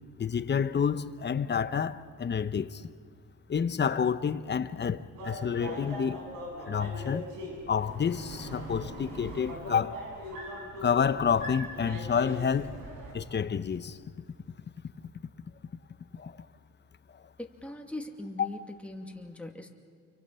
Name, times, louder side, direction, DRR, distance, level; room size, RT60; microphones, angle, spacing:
voice 1, 0.2-2.8 3.5-6.2 6.7-7.3 7.7-10.0 10.8-12.8 13.1-14.0 16.1-16.5 17.1-17.2, left 7 dB, 35° left, 0.9 m, -29 dB
sound 1, 5.1-13.1, equal, 90° right, 7.2 m, -41 dB
voice 2, 17.4-19.7, left 1 dB, 5° left, 2.5 m, -41 dB
29.0 x 24.0 x 5.7 m
cardioid pair, 95°, 31 cm